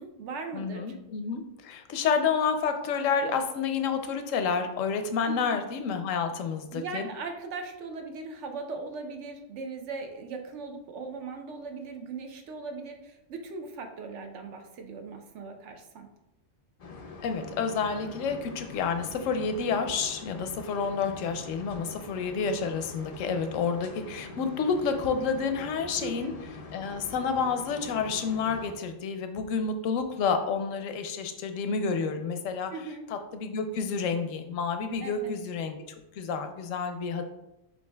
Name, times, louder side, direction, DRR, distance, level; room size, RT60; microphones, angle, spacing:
voice 1, 0.0-0.9 5.3-5.6 6.7-16.1 26.0-26.4 32.7-33.1 35.0-35.3, right 4 dB, 70° right, 5 dB, 0.9 m, -39 dB
voice 2, 0.5-7.1 17.2-26.3 26.7-32.7 33.1-35.8 36.2-37.3, left 5 dB, 85° left, 7 dB, 0.9 m, -29 dB
sound 1, 16.8-28.7, left 3 dB, 65° left, 0.3 m, -44 dB
8.0 x 2.7 x 2.2 m, 0.93 s
omnidirectional pair, 1.3 m